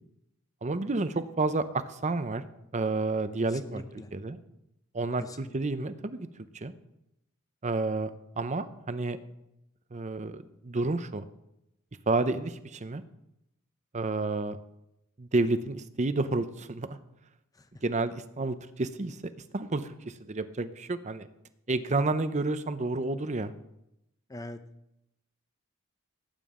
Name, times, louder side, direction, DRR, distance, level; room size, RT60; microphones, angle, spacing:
voice 1, 0.6-2.4 2.7-3.8 4.1-4.4 4.9-5.2 5.5-6.3 6.6-6.7 7.6-8.1 8.4-9.2 9.9-11.2 12.1-13.0 13.9-14.6 15.2-17.0 17.8-19.2 19.5-21.3 21.7-23.5, right 3 dB, 35° right, 12 dB, 0.6 m, -30 dB
voice 2, 3.5-4.1 5.2-5.6 17.5-17.8 24.3-24.6, left 1 dB, 15° left, 9 dB, 0.7 m, -43 dB
18.0 x 9.0 x 3.7 m, 0.85 s
head